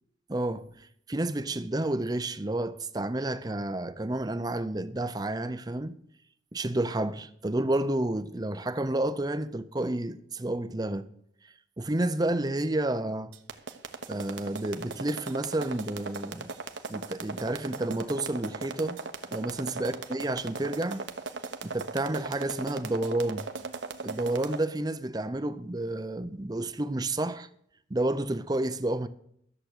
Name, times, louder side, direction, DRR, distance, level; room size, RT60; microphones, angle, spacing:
voice 1, 0.3-0.7 1.1-6.0 6.5-11.1 11.8-13.3 14.1-16.5 16.9-19.0 19.3-21.1 21.6-23.5 24.0-27.5 27.9-29.1, right 1 dB, 20° right, 0.6 m, -30 dB
sound 1, 13.3-24.6, right 4 dB, 75° right, 1.1 m, -37 dB
13.5 x 7.5 x 6.6 m
head